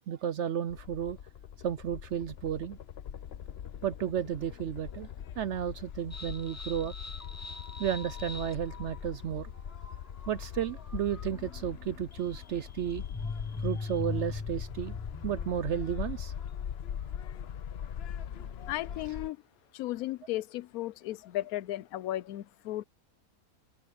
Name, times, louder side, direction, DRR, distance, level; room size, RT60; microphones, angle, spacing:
voice 1, 0.1-1.2 1.6-2.8 3.8-5.1 5.4-6.9 7.8-9.5 10.3-13.0 13.6-15.0 15.2-16.3, right 9 dB, 65° right, 0.7 m, -33 dB
sound 1, 0.7-19.3, left 9 dB, 55° left, 0.8 m, -41 dB
sound 2, 6.1-16.7, left 3 dB, 20° left, 0.4 m, -42 dB
voice 2, 18.7-19.4 19.7-22.8, left 15 dB, 75° left, 1.0 m, -35 dB
open air
omnidirectional pair, 1.6 m